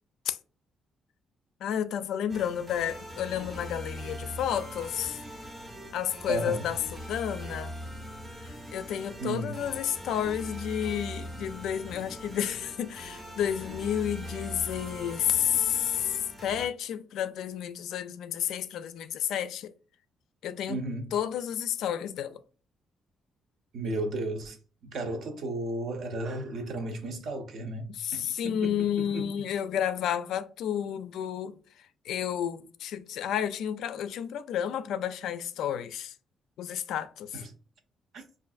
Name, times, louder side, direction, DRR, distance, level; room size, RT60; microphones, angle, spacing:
voice 1, 1.6-5.2 5.9-7.8 8.4-19.7 20.4-20.8 21.1-22.4 27.9-31.6 32.0-36.1 36.6-37.4, left 9 dB, 70° left, 0.3 m, -31 dB
sound 1, 2.3-16.7, equal, 10° right, 0.7 m, -41 dB
voice 2, 6.3-6.6 9.2-9.6 20.7-21.1 23.7-29.4 37.3-37.5 38.1-38.2, right 2 dB, 50° right, 0.7 m, -34 dB
5.0 x 2.5 x 2.4 m
cardioid pair, 175°, 0 cm